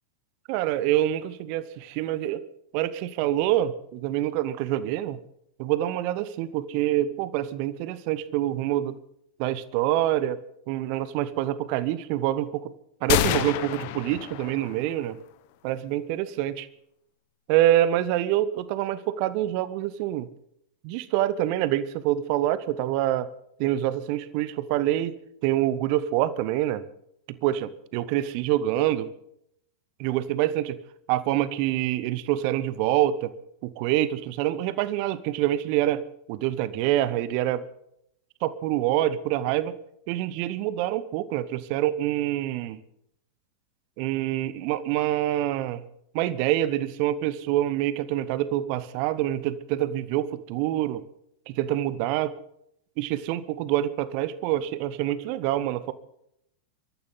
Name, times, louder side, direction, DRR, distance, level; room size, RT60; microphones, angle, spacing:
voice 1, 0.5-2.4 2.7-5.2 5.6-9.0 9.4-10.4 10.7-12.7 13.0-15.2 15.6-16.7 17.5-20.3 20.8-23.3 23.6-25.1 25.4-26.8 27.3-29.1 30.0-30.8 31.1-33.3 33.6-36.0 36.3-37.6 38.4-39.7 40.1-42.8 44.0-45.8 46.1-51.0 51.5-52.4 53.0-55.9, right 13 dB, 45° right, 16 dB, 1.1 m, -26 dB
sound 1, 13.1-15.0, left 14 dB, 50° left, 1.1 m, -27 dB
25.0 x 14.0 x 3.9 m, 0.75 s
figure-of-eight pair, 90°, 0 cm